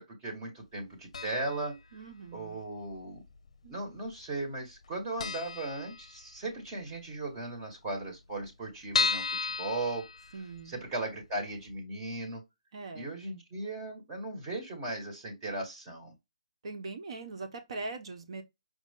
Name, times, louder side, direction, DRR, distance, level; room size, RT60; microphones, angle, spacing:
voice 1, 0.0-1.8 2.3-3.2 3.7-10.1 10.7-12.4 13.0-16.1, right 2 dB, 20° right, 1.8 m, -37 dB
sound 1, 1.1-1.7 1.9-2.0 3.0-3.7 3.9-4.1 4.4-4.5 4.8-4.9 5.2-6.5 6.9-7.0 7.3-7.4 7.5-7.6 8.1-10.8 11.2-11.3 11.7-11.8, left 4 dB, 70° left, 0.5 m, -33 dB
voice 2, 1.9-2.6 3.6-3.8 10.3-10.8 12.7-13.1 16.6-18.4, right 3 dB, 55° right, 1.0 m, -41 dB
5.2 x 2.4 x 3.6 m
hypercardioid pair, 160°, 4 cm